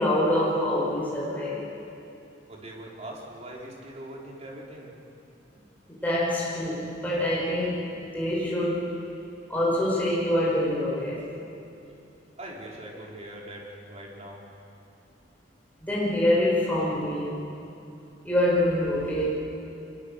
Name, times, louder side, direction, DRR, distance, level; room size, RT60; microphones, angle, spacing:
voice 1, 0.0-1.6 6.0-8.9 9.5-11.2 15.8-17.4 18.2-19.3, left 1 dB, 10° left, -6 dB, 5.6 m, -25 dB
voice 2, 2.5-4.9 5.5-5.7 12.4-14.4, right 1 dB, 40° right, -2 dB, 4.2 m, -41 dB
24.5 x 21.5 x 6.7 m, 2.7 s
head